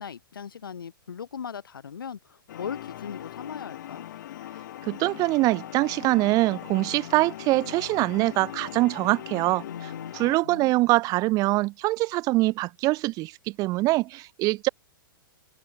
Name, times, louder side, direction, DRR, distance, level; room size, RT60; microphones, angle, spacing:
voice 1, 0.0-4.0 9.6-10.7, left 7 dB, 75° left, 7.6 m, -39 dB
sound 1, 2.5-10.4, left 12 dB, 60° left, 4.6 m, -40 dB
voice 2, 4.8-9.6 10.1-14.7, right 20 dB, 30° right, 0.8 m, -24 dB
hypercardioid pair, 115°, 12 cm